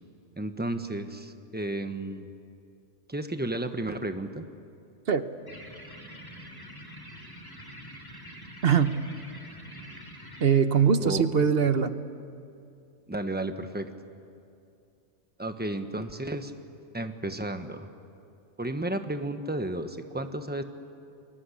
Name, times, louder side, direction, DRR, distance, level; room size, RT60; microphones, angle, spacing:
voice 1, 0.4-2.3 3.1-4.5 11.0-11.2 13.1-13.9 15.4-16.5 16.9-17.9 18.6-20.6, right 1 dB, 10° right, 7 dB, 1.2 m, -32 dB
sound 1, 5.5-10.5, equal, 20° left, 3.1 m, -45 dB
voice 2, 8.6-9.0 10.4-11.9, right 6 dB, 55° right, 11 dB, 1.2 m, -22 dB
29.5 x 22.0 x 8.5 m, 2.5 s
omnidirectional pair, 1.2 m